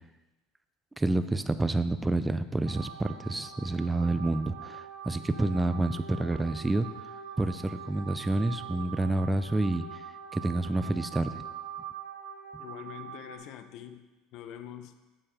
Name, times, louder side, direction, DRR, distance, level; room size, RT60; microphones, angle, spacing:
voice 1, 1.0-6.9 7.4-9.9 10.3-11.4, right 2 dB, 10° right, 11 dB, 0.4 m, -28 dB
sound 1, 2.6-13.4, right 8 dB, 65° right, 2.7 m, -43 dB
voice 2, 12.6-14.0 14.3-15.0, left 10 dB, 55° left, 9 dB, 0.6 m, -44 dB
8.7 x 6.9 x 3.5 m, 1.1 s
supercardioid pair, 140°, 0 cm